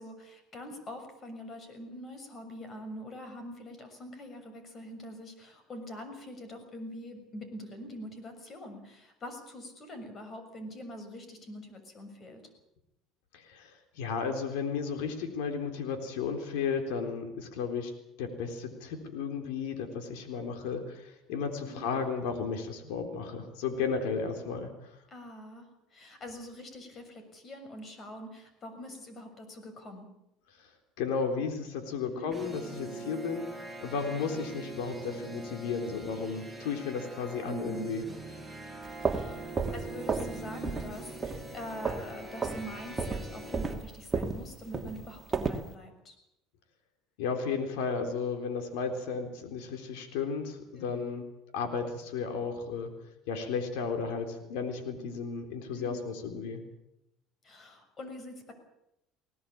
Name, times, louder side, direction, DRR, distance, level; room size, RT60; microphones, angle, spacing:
voice 1, 0.0-12.4 21.6-22.0 25.1-25.7 25.9-30.1 32.0-32.3 37.5-37.9 39.0-46.1 50.8-51.1 55.7-56.0 57.4-58.5, left 1 dB, 35° left, 8 dB, 6.7 m, -44 dB
voice 2, 13.3-17.9 18.2-24.9 31.0-33.5 33.8-38.0 47.2-51.2 51.5-52.9 53.3-56.6, left 5 dB, 85° left, 6 dB, 3.8 m, -34 dB
sound 1, 32.3-43.7, right 2 dB, 5° left, 5.4 m, -43 dB
sound 2, 38.8-40.4 40.6-40.9 41.2-42.1 42.4-42.6 43.0-45.7, right 4 dB, 20° right, 2.4 m, -32 dB
21.0 x 18.0 x 8.8 m, 0.83 s
supercardioid pair, 115°, 0 cm